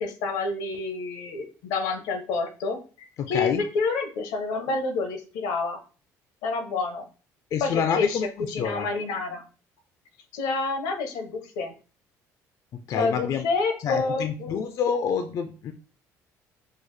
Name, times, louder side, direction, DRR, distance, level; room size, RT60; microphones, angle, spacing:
voice 1, 0.0-5.8 6.4-7.0 7.6-8.2 8.5-9.4 10.3-11.7 12.9-14.6, left 4 dB, 85° left, 6 dB, 0.8 m, -28 dB
voice 2, 3.2-3.6 7.5-8.9 12.9-13.4 13.8-15.7, left 7 dB, 55° left, 8 dB, 0.4 m, -27 dB
4.6 x 2.0 x 3.1 m, 0.37 s
supercardioid pair, 85°, 7 cm